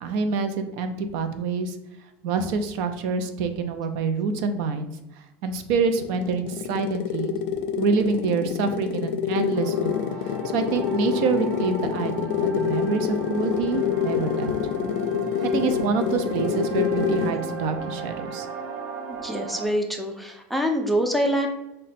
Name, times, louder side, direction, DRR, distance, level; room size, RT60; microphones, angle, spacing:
voice 1, 0.0-1.8 2.2-4.9 5.4-7.3 7.8-10.0 10.5-14.5 15.4-18.5, right 4 dB, 60° right, 8 dB, 0.5 m, -26 dB
sound 1, 5.7-17.5, left 8 dB, 70° left, 0.4 m, -27 dB
sound 2, 9.5-19.7, right 4 dB, 85° right, 0.9 m, -36 dB
voice 2, 19.1-21.5, equal, ahead, 3 dB, 0.3 m, -25 dB
4.8 x 2.2 x 4.1 m, 0.93 s
cardioid pair, 160°, 6 cm